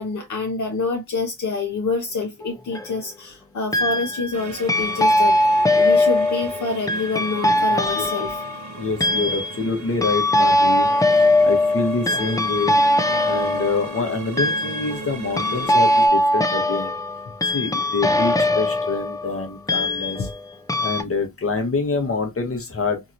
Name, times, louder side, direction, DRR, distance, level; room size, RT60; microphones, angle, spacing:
voice 1, 0.0-5.3 5.8-8.4 20.2-20.3, left 3 dB, 60° left, 0.8 m, -27 dB
sound 1, 2.4-3.0 3.7-4.4 4.7-20.4 20.7-21.0, left 1 dB, 10° left, 0.4 m, -21 dB
sound 2, 4.3-16.1, right 5 dB, 60° right, 0.8 m, -37 dB
voice 2, 8.8-12.8 13.2-16.9 17.4-20.3 20.8-23.0, left 4 dB, 45° left, 1.1 m, -26 dB
2.9 x 2.8 x 2.5 m
cardioid pair, 70°, 32 cm